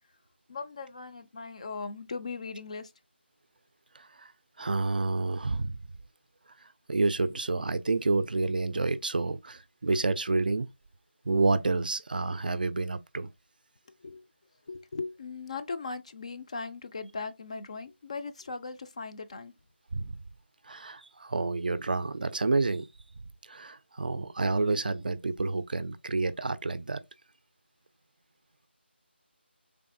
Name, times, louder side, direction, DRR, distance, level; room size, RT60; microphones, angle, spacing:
voice 1, 0.5-2.9 14.0-14.2 14.7-19.5, left 4 dB, 35° left, 0.4 m, -38 dB
voice 2, 3.9-4.3 4.6-5.8 6.9-10.7 11.3-13.3 19.9-20.1 20.6-22.9 23.5-27.0, right 3 dB, 50° right, 0.4 m, -29 dB
3.7 x 3.5 x 2.5 m
figure-of-eight pair, 160°, 6 cm